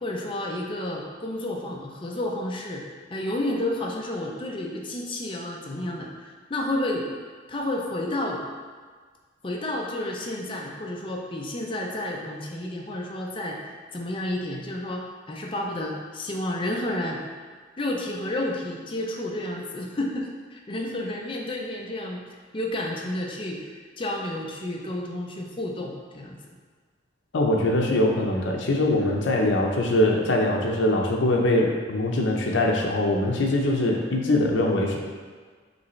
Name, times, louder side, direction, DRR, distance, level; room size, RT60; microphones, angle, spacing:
voice 1, 0.0-7.1 7.5-8.4 9.4-13.6 13.9-17.2 17.8-22.2 22.5-26.4, left 1 dB, 30° left, -1 dB, 0.5 m, -31 dB
voice 2, 27.3-35.0, left 1 dB, 80° left, 0 dB, 0.6 m, -22 dB
5.1 x 3.3 x 3.1 m, 1.6 s
head